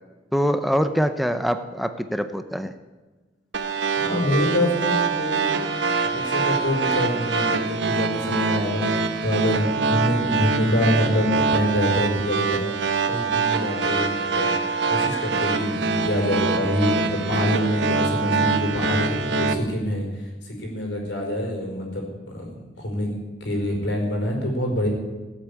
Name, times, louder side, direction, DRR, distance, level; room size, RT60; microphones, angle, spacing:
voice 1, 0.3-2.8, equal, ahead, 9 dB, 0.5 m, -24 dB
sound 1, 3.5-19.5, right 4 dB, 80° right, 1.2 m, -24 dB
voice 2, 4.0-5.6 6.0-12.7 13.0-14.5 14.9-24.9, equal, 90° left, 1 dB, 4.9 m, -26 dB
17.0 x 8.2 x 8.5 m, 1.3 s
head